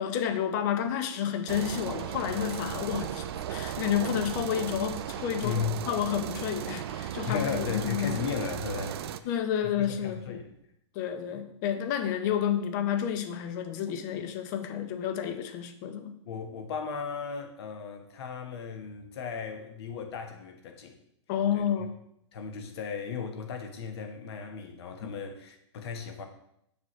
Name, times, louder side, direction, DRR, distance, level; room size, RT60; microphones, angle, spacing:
voice 1, 0.0-8.2 9.2-10.4 10.9-16.1 21.3-22.0 25.0-25.2, left 9 dB, 40° left, 0.7 m, -30 dB
sound 1, 1.5-9.2, right 11 dB, 55° right, 0.4 m, -36 dB
voice 2, 5.4-5.8 7.3-9.3 9.8-10.5 16.2-21.0 21.5-21.9 22.3-26.2, left 6 dB, 60° left, 1.2 m, -36 dB
7.2 x 5.9 x 3.1 m
hypercardioid pair, 150°, 15 cm